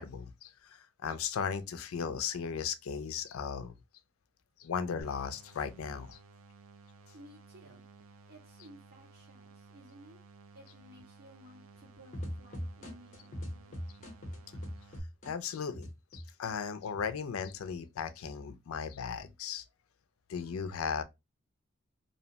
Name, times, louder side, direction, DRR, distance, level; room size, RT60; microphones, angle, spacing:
voice 1, 0.0-3.7 4.6-6.2 15.2-19.6 20.3-21.0, left 6 dB, 85° left, 0.4 m, -36 dB
sound 1, 5.0-15.0, right 3 dB, 75° right, 0.4 m, -56 dB
voice 2, 7.1-7.8 8.3-10.2 10.5-13.9, equal, 50° right, 1.4 m, -56 dB
sound 2, 12.1-16.5 16.9-17.7, equal, 40° left, 0.8 m, -41 dB
2.7 x 2.1 x 2.7 m
head